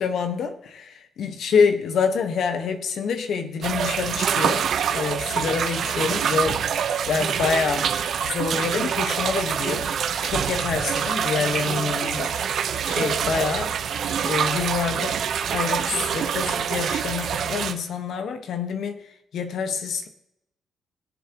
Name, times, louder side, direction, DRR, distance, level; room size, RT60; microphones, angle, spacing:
voice 1, 0.0-6.6 7.1-7.9 8.2-9.9 10.2-12.3 12.9-13.7 14.2-19.0 19.3-20.1, left 6 dB, 70° left, 7 dB, 1.4 m, -26 dB
sound 1, 3.6-17.7, right 8 dB, 65° right, 1.1 m, -25 dB
21.5 x 7.2 x 3.1 m, 0.82 s
cardioid pair, 90°, 0 cm